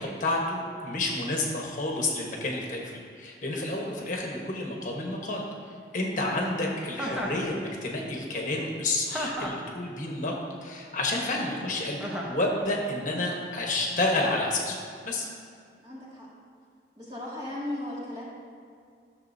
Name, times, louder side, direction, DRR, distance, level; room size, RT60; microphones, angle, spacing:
voice 1, 0.0-5.4 5.9-12.0 12.3-14.7 15.0-15.3, left 2 dB, 45° left, -1 dB, 1.2 m, -30 dB
Chuckle chortle, 6.9-7.5 9.1-9.7 12.0-12.4, equal, 5° right, 1.0 m, -32 dB
voice 2, 15.8-16.3 17.0-18.2, left 1 dB, 25° right, -7 dB, 2.2 m, -36 dB
14.0 x 6.8 x 2.7 m, 2.3 s
head